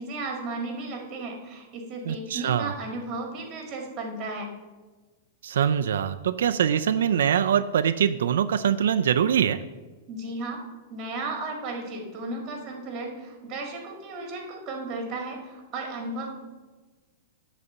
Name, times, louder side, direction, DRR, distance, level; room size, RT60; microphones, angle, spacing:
voice 1, 0.0-4.5 10.1-10.6 10.9-16.4, right 2 dB, 25° right, 2 dB, 1.9 m, -34 dB
voice 2, 2.1-2.7 5.4-9.6, right 8 dB, 85° right, 9 dB, 0.4 m, -23 dB
12.5 x 4.1 x 6.8 m, 1.3 s
supercardioid pair, 165°, 0 cm